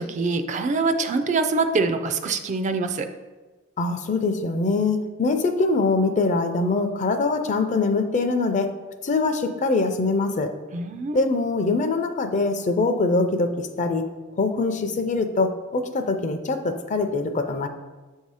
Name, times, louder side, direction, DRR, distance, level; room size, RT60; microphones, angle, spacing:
voice 1, 0.0-3.1 10.7-11.2, right 3 dB, 35° right, 8 dB, 0.3 m, -24 dB
voice 2, 3.8-8.7 9.0-10.5 11.1-14.1 14.4-17.7, left 3 dB, 40° left, 7 dB, 0.4 m, -23 dB
7.2 x 2.7 x 4.8 m, 1.3 s
head